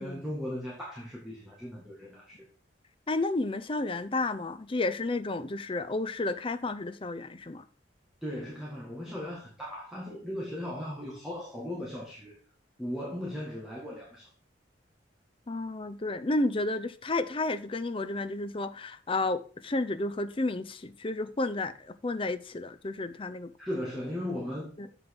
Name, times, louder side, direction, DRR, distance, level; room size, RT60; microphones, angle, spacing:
voice 1, 0.0-2.5 8.2-12.3 12.8-14.3 23.6-24.9, left 1 dB, ahead, 1.8 m, -37 dB
voice 2, 3.1-7.6 15.5-23.5 24.8-24.9, left 2 dB, 30° left, 0.6 m, -31 dB
7.6 x 5.3 x 5.9 m
head